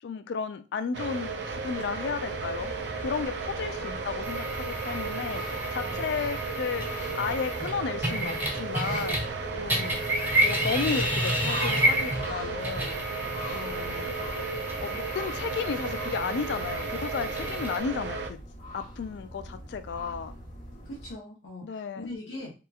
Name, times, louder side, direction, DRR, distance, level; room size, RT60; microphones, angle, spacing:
voice 1, 0.0-2.7 3.0-6.9 7.1-9.2 9.6-10.0 10.4-13.0 13.5-14.1 14.8-18.4 18.7-20.3 21.6-22.1, left 5 dB, 70° left, 11 dB, 0.3 m, -33 dB
sound 1, 0.9-18.3, right 4 dB, 70° right, 0.4 m, -35 dB
sound 2, 1.5-21.1, equal, 45° left, 0.8 m, -44 dB
sound 3, 4.2-9.4 9.7-17.8, equal, 10° right, 0.6 m, -31 dB
voice 2, 20.9-22.5, left 1 dB, 85° left, -5 dB, 0.7 m, -41 dB
2.8 x 2.4 x 2.3 m, 0.32 s
head